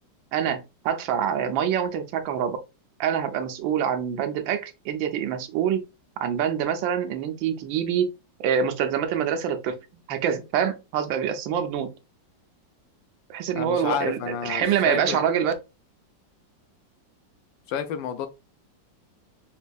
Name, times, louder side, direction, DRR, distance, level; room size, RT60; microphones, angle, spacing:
voice 1, 0.3-2.6 3.0-5.8 6.2-8.1 8.4-9.8 10.1-11.9 13.3-15.5, right 8 dB, 85° right, 1.4 m, -25 dB
voice 2, 13.6-15.2 17.7-18.3, left 8 dB, 85° left, 1.3 m, -30 dB
5.2 x 2.6 x 2.3 m
omnidirectional pair, 2.0 m